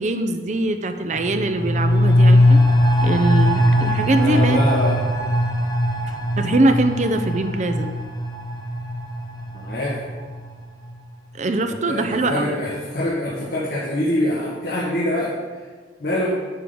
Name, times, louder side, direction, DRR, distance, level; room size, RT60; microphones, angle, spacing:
voice 1, 0.0-2.6 3.0-4.6 6.0-7.9 11.4-12.5, right 2 dB, 40° right, 8 dB, 0.6 m, -22 dB
sound 1, 1.1-10.5 10.8-10.9, left 1 dB, 25° left, 0.9 m, -20 dB
voice 2, 4.2-5.0 9.6-10.0 11.7-15.3 16.0-16.3, left 1 dB, 60° left, -6 dB, 1.6 m, -24 dB
9.5 x 3.8 x 7.0 m, 1.4 s
head